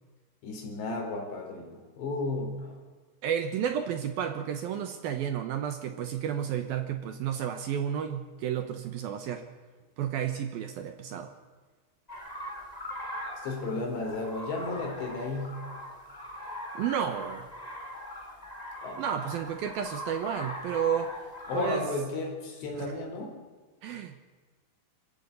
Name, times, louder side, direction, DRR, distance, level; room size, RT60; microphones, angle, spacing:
voice 1, 0.4-2.8 13.4-15.6 18.8-19.0 21.5-23.4, left 3 dB, 70° left, 2 dB, 6.3 m, -33 dB
voice 2, 3.2-9.4 10.0-11.3 16.7-17.5 19.0-21.1 21.5-21.8 22.8-22.9 23.8-24.2, right 9 dB, 70° right, 8 dB, 2.5 m, -31 dB
sound 1, 12.1-21.8, equal, 10° left, 2.6 m, -40 dB
26.0 x 15.0 x 8.4 m, 1.4 s
omnidirectional pair, 5.2 m